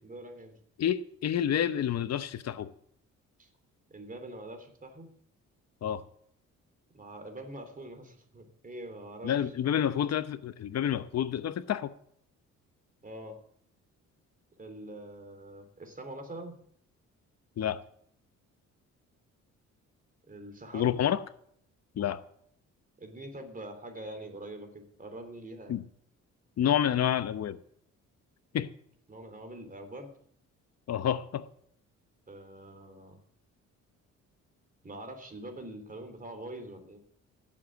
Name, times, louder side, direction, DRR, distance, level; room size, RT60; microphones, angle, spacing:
voice 1, 0.0-0.5 3.4-3.5 3.9-5.1 6.9-9.3 13.0-13.4 14.6-16.6 20.3-21.0 23.0-25.8 29.1-30.1 32.3-33.2 34.8-37.0, right 1 dB, 25° right, 3.4 m, -44 dB
voice 2, 0.8-2.7 5.8-6.0 9.2-11.9 17.6-17.8 20.7-21.2 22.0-22.2 25.7-25.8 26.6-27.6 28.5-28.7 30.9-31.5, left 10 dB, 60° left, 0.9 m, -29 dB
16.0 x 7.6 x 7.8 m
cardioid pair, 90°, 30 cm